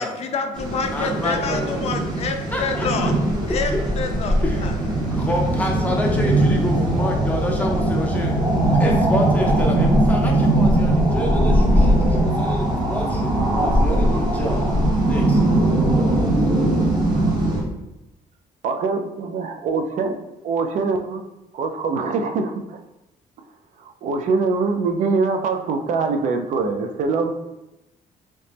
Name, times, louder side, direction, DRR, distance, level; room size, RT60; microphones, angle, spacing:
voice 1, 0.0-3.1 3.5-4.3 4.6-4.7, left 4 dB, 50° left, 5 dB, 0.4 m, -27 dB
sound 1, 0.5-17.6, right 1 dB, 30° right, 1.1 m, -20 dB
voice 2, 0.9-1.8 2.5-3.1 3.5-3.8 4.4-4.7 5.1-8.3 8.8-14.6 15.1-15.4, left 1 dB, 10° left, 0 dB, 0.7 m, -28 dB
voice 3, 18.6-20.2 20.4-21.3 21.5-22.8 23.8-27.3, right 4 dB, 60° right, 5 dB, 0.4 m, -23 dB
3.0 x 2.8 x 3.3 m, 0.93 s
cardioid pair, 120°, 15 cm